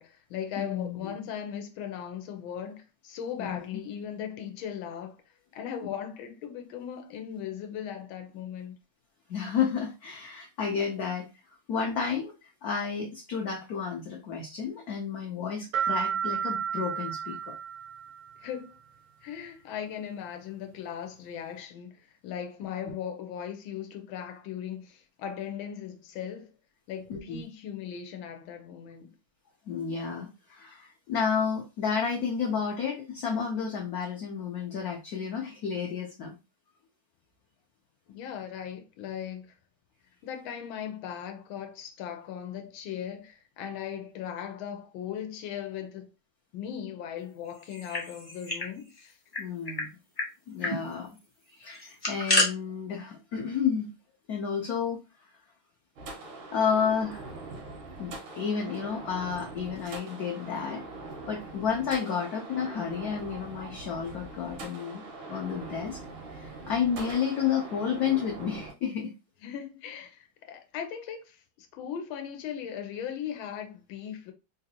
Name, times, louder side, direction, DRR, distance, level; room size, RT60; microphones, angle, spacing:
voice 1, 0.0-5.2 5.5-8.8 18.4-18.8 19.2-26.5 26.9-29.1 38.1-39.5 40.2-46.1 46.5-49.2 69.4-74.3, left 9 dB, 85° left, 1.4 m, -38 dB
voice 2, 0.6-1.3 3.4-3.7 9.3-11.3 11.7-17.5 27.1-27.4 29.7-36.4 49.4-49.9 50.5-51.1 51.6-53.9 54.3-55.0 56.5-57.2 58.0-60.8 61.3-65.0 65.3-66.0 66.3-69.1, left 7 dB, 70° left, 0.9 m, -31 dB
sound 1, 15.7-18.4, right 7 dB, 70° right, 0.9 m, -32 dB
sound 2, 47.6-48.7 49.0-49.1 49.3-49.9 50.2-50.3 50.6-50.8 51.7-52.5, left 2 dB, 20° left, 0.7 m, -28 dB
sound 3, 56.0-68.7, right 2 dB, 90° right, 1.7 m, -42 dB
3.9 x 2.5 x 2.7 m
omnidirectional pair, 2.2 m